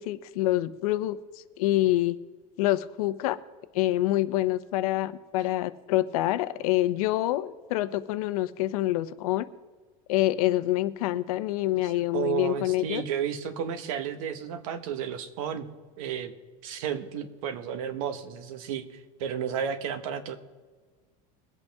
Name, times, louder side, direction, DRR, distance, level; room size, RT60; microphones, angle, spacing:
voice 1, 0.0-2.2 2.6-3.4 3.7-9.5 10.1-13.0, left 15 dB, 85° left, 14 dB, 0.7 m, -26 dB
voice 2, 11.8-15.7 16.0-16.3 16.6-20.4, right 8 dB, 70° right, 10 dB, 1.3 m, -32 dB
22.0 x 8.2 x 3.5 m, 1.4 s
cardioid pair, 175°, 18 cm